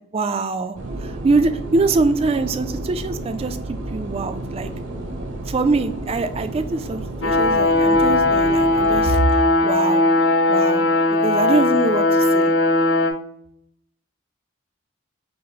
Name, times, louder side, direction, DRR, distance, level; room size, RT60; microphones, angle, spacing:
voice 1, 0.1-3.6 3.9-4.7 5.5-10.0 10.5-12.5, right 3 dB, 30° right, 10 dB, 0.3 m, -23 dB
sound 1, 0.7-9.1, right 2 dB, 65° right, 0.7 m, -32 dB
sound 2, 7.2-13.1, left 2 dB, 75° left, 0.6 m, -18 dB
5.4 x 2.0 x 4.0 m, 0.68 s
head